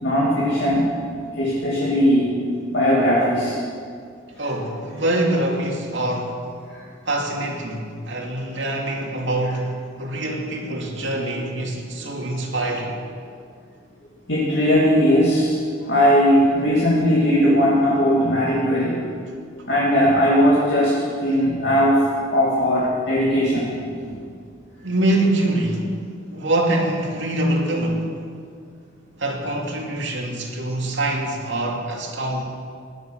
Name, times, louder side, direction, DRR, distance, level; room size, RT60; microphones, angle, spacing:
voice 1, 0.0-1.0 1.4-2.4 2.7-3.6 6.7-6.9 11.1-11.2 11.9-12.0 14.3-19.0 19.7-23.7 24.1-24.2, equal, 65° left, -6 dB, 2.6 m, -19 dB
voice 2, 4.4-6.4 7.1-13.0 24.8-26.0 26.3-28.3 29.2-32.4, right 1 dB, 70° right, -1 dB, 2.5 m, -24 dB
16.5 x 11.5 x 6.1 m, 2.2 s
head